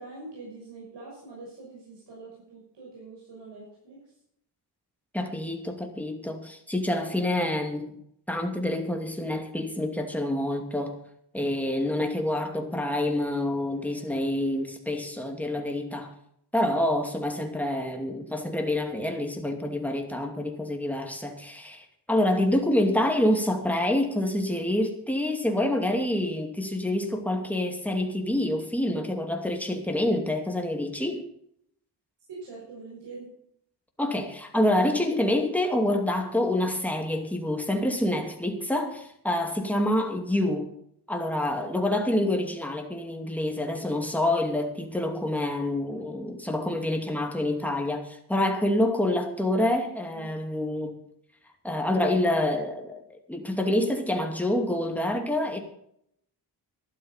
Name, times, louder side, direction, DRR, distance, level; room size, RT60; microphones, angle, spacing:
voice 1, 0.0-4.2 32.3-33.3 49.7-50.3, right 3 dB, 85° right, 6.3 m, -44 dB
voice 2, 5.1-7.9 8.3-11.0 11.3-16.1 16.5-31.2 34.0-40.7 41.1-51.0 51.6-53.0 53.3-55.6, left 1 dB, 5° left, 2.6 m, -27 dB
12.0 x 12.0 x 5.7 m
wide cardioid pair, 105°, 42 cm